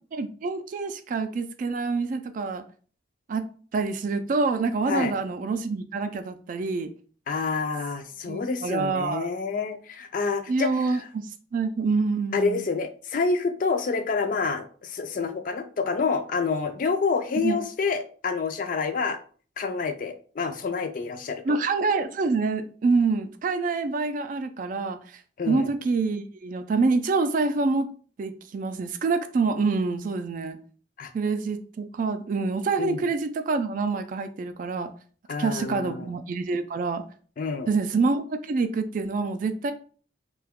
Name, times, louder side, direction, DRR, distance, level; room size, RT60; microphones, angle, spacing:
voice 1, 0.2-2.6 3.3-3.4 3.7-6.9 8.3-9.3 10.5-11.3 11.5-12.6 17.4-17.6 21.4-25.0 25.5-27.9 28.2-30.6 31.1-34.9 35.4-37.0 37.7-39.7, right 4 dB, 45° right, 9 dB, 0.3 m, -26 dB
voice 2, 7.3-11.1 12.3-19.2 19.6-21.6 25.4-25.7 31.0-31.1 32.8-33.1 35.3-36.1 37.4-37.7, left 4 dB, 50° left, 7 dB, 0.4 m, -28 dB
2.7 x 2.3 x 3.5 m, 0.42 s
head